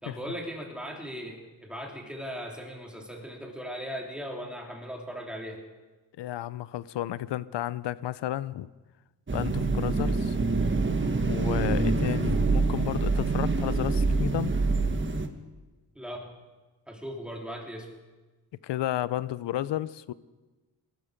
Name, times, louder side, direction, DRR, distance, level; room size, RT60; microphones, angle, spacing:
voice 1, 0.0-5.6 16.0-16.3 16.9-17.9, equal, ahead, 0 dB, 3.4 m, -38 dB
voice 2, 6.2-8.7 9.3-10.4 11.3-14.6 18.6-20.1, left 13 dB, 75° left, 18 dB, 0.7 m, -32 dB
sound 1, 9.3-15.3, right 3 dB, 25° right, 1.5 m, -26 dB
20.5 x 13.0 x 5.2 m, 1.2 s
cardioid pair, 70°, 43 cm